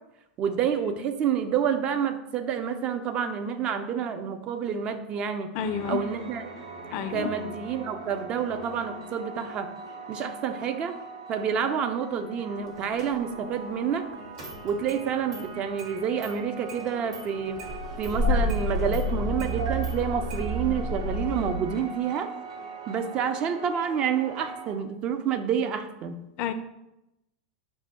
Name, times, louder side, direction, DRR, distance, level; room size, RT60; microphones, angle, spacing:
voice 1, 0.4-5.5 5.9-6.5 6.9-9.7 10.1-11.0 11.3-14.0 14.6-17.6 18.0-22.3 22.9-26.2, right 7 dB, 35° right, 8 dB, 0.4 m, -28 dB
voice 2, 5.5-6.0 6.9-7.3 26.4-26.5, left 8 dB, 45° left, 10 dB, 0.4 m, -29 dB
sound 1, 5.6-24.7, right 4 dB, 90° right, 1.2 m, -41 dB
Engine starting, 13.0-13.1 14.4-15.0 15.3-15.4 15.8-15.9 16.2-16.3 16.7-17.2 17.6-21.5, left 1 dB, 55° right, 1.4 m, -29 dB
4.3 x 2.2 x 4.4 m, 0.90 s
figure-of-eight pair, 90°, 3 cm